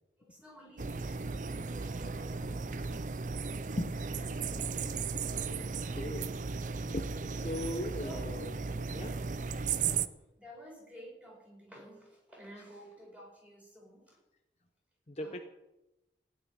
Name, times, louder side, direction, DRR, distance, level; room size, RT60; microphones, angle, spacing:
voice 1, 0.3-3.3 8.0-8.2 9.8-10.1 10.4-14.2 15.2-15.4, equal, 5° right, -3 dB, 4.7 m, -52 dB
sound 1, 0.8-10.1, right 5 dB, 45° right, 0.5 m, -36 dB
voice 2, 3.8-4.2 4.5-6.5 6.9-8.5 8.9-9.2 9.7-9.8 15.1-15.4, left 1 dB, 35° left, 5 dB, 0.8 m, -40 dB
16.0 x 5.8 x 9.8 m, 0.97 s
head